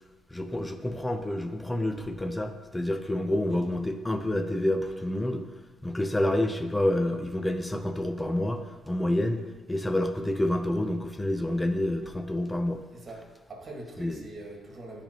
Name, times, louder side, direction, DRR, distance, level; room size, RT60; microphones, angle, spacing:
voice 1, 0.3-5.4 5.8-9.4 9.7-12.8 14.0-14.2, left 1 dB, 10° left, 6 dB, 0.6 m, -28 dB
voice 2, 12.9-15.0, right 2 dB, 40° right, -1 dB, 1.6 m, -43 dB
10.0 x 3.4 x 3.0 m, 1.2 s
cardioid pair, 85°, 0 cm